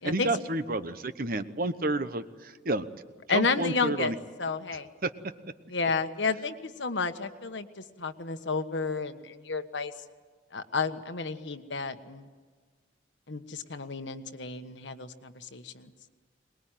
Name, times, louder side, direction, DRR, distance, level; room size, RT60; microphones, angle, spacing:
voice 1, 0.0-2.9 3.3-4.1 5.0-5.1, right 2 dB, 50° right, 11 dB, 1.0 m, -30 dB
voice 2, 3.3-4.1 4.4-4.9 5.7-9.9 10.5-12.3 13.3-15.9, left 4 dB, 70° left, 8 dB, 1.4 m, -31 dB
23.0 x 21.0 x 9.2 m, 1.5 s
head